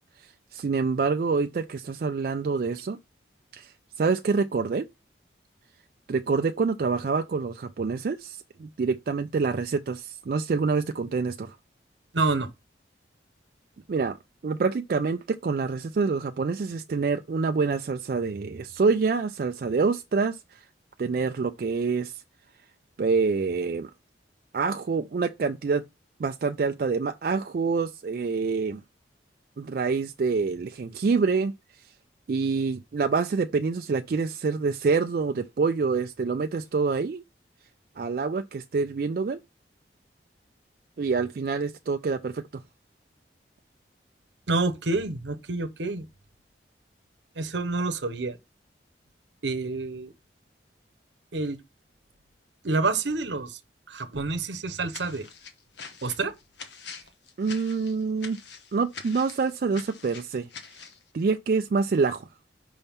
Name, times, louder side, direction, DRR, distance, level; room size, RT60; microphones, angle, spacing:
voice 1, 0.2-3.0 3.5-4.9 6.1-11.6 13.9-14.2 14.4-20.6 21.0-22.2 23.0-23.9 24.5-25.8 26.2-28.8 29.6-31.5 32.3-37.2 38.0-39.4 41.0-42.6 57.4-58.4 58.7-60.5 61.1-62.3, right 4 dB, 50° right, 0.3 m, -26 dB
voice 2, 12.1-12.5 44.5-46.1 47.4-48.4 49.4-50.1 51.3-51.6 52.6-53.6 53.9-55.3 56.0-56.3, right 3 dB, 80° right, 0.9 m, -28 dB
sound 1, 54.9-61.0, left 5 dB, 75° left, 1.1 m, -44 dB
5.4 x 3.5 x 5.6 m
head